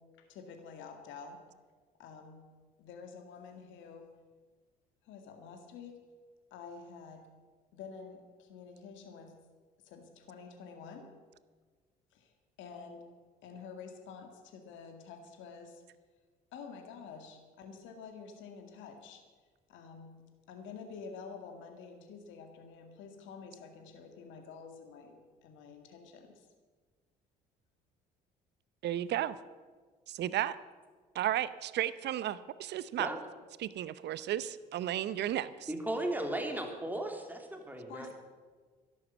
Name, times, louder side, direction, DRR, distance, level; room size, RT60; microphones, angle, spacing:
voice 1, 0.0-1.4 2.0-2.5 2.8-4.2 5.0-6.1 6.5-7.3 7.7-9.4 9.8-11.1 12.1-13.1 13.4-15.8 16.5-19.2 19.7-20.2 20.5-26.5 37.9-38.1, left 5 dB, 65° left, 5 dB, 2.0 m, -49 dB
voice 2, 28.8-29.4 30.1-30.6 31.1-33.1 33.6-35.7, right 12 dB, 55° right, 16 dB, 0.8 m, -33 dB
voice 3, 35.7-38.1, right 1 dB, 10° right, 3 dB, 3.1 m, -36 dB
12.5 x 11.0 x 7.3 m, 1.5 s
hypercardioid pair, 60°, 21 cm